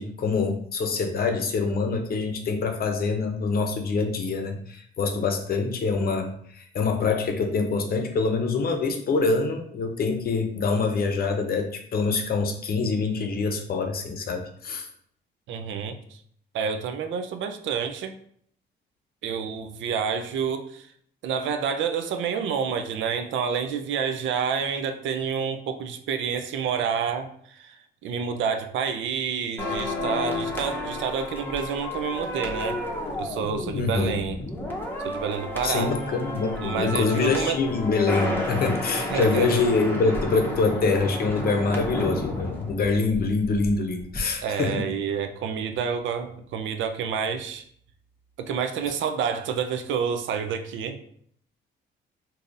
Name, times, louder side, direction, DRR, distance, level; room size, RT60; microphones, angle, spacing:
voice 1, 0.0-14.9 33.7-34.2 35.6-44.8, left 4 dB, 50° left, 4 dB, 0.6 m, -25 dB
voice 2, 15.5-16.0 16.5-18.1 19.2-20.9 21.2-32.8 33.2-34.4 35.0-35.9 36.6-37.7 39.1-39.6 44.4-47.6 48.4-51.0, right 6 dB, 75° right, 8 dB, 0.4 m, -28 dB
sound 1, 29.6-43.7 44.0-44.2, left 1 dB, 10° left, 0.8 m, -31 dB
3.7 x 2.7 x 2.5 m, 0.63 s
cardioid pair, 90°, 20 cm